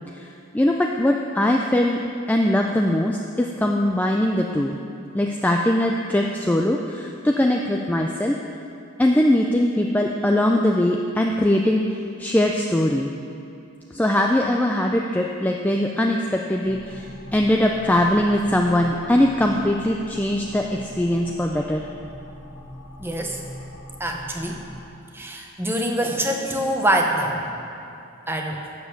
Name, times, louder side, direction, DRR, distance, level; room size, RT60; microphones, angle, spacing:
voice 1, 0.5-2.0 2.3-4.8 5.1-8.4 9.0-13.1 13.9-21.9, left 1 dB, 5° left, 1 dB, 0.3 m, -21 dB
sound 1, 16.6-24.9, left 1 dB, 65° left, 1.4 m, -42 dB
voice 2, 23.0-23.4 24.0-24.6 25.1-27.5 28.3-28.6, right 1 dB, 10° right, 2 dB, 0.8 m, -24 dB
8.7 x 7.1 x 6.6 m, 2.7 s
head